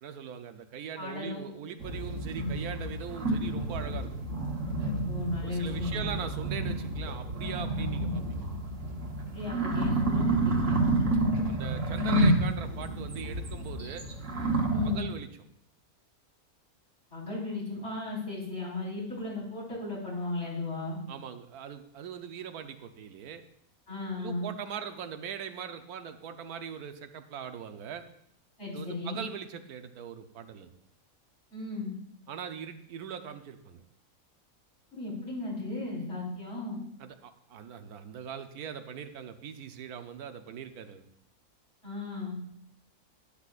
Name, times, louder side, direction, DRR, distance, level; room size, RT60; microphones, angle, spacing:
voice 1, 0.0-4.1 5.4-8.4 11.5-14.0 14.8-15.3 21.1-23.4 24.2-28.0 28.7-30.7 32.3-33.8 37.0-41.0, right 8 dB, 90° right, 8 dB, 1.3 m, -41 dB
voice 2, 1.0-1.4 5.0-6.1 9.3-10.8 14.7-15.0 17.1-21.0 23.9-24.5 28.6-29.2 31.5-31.9 34.9-36.8 41.8-42.4, left 3 dB, 50° left, -6 dB, 4.6 m, -35 dB
sound 1, 1.8-15.0, right 1 dB, 60° right, 1.6 m, -29 dB
12.0 x 11.5 x 2.5 m, 0.69 s
omnidirectional pair, 1.6 m